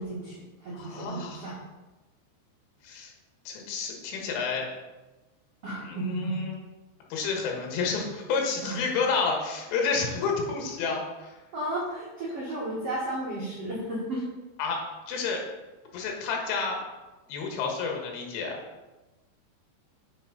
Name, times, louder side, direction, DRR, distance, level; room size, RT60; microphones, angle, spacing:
voice 1, 0.0-1.6 5.6-6.4 8.6-8.9 11.5-14.2, right 1 dB, 85° right, -6 dB, 1.3 m, -33 dB
voice 2, 0.7-1.6 2.8-3.1 3.5-4.7 5.9-6.6 7.1-11.4 14.6-15.4 15.9-16.8 17.3-18.6, left 5 dB, 85° left, 0 dB, 3.9 m, -30 dB
10.0 x 5.4 x 4.0 m, 1.1 s
omnidirectional pair, 5.5 m